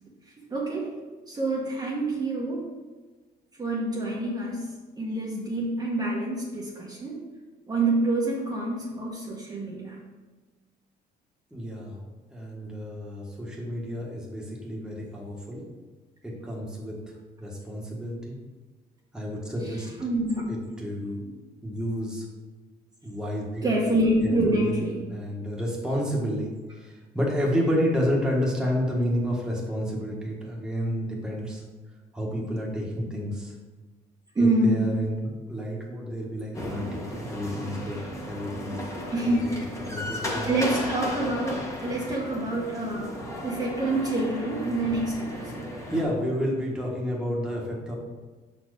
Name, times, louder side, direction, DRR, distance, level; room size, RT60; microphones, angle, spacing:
voice 1, 0.5-0.9 1.3-2.7 3.6-7.2 7.7-10.0 19.6-20.5 23.6-25.0 34.3-34.9 38.7-38.8 39.1-39.5 40.5-43.2 43.4-45.7, right 1 dB, 25° right, -4 dB, 1.2 m, -27 dB
voice 2, 11.5-12.0 12.3-15.7 16.2-17.0 17.4-18.4 19.1-19.9 20.5-21.3 21.6-22.3 23.0-23.7 24.2-24.7 25.1-31.6 32.1-33.5 34.4-38.0 38.3-40.5 45.9-47.9, equal, 5° right, -3 dB, 1.4 m, -30 dB
sound 1, 36.5-46.0, left 1 dB, 15° left, 1.3 m, -35 dB
5.8 x 4.4 x 4.9 m, 1.3 s
cardioid pair, 110°, 17 cm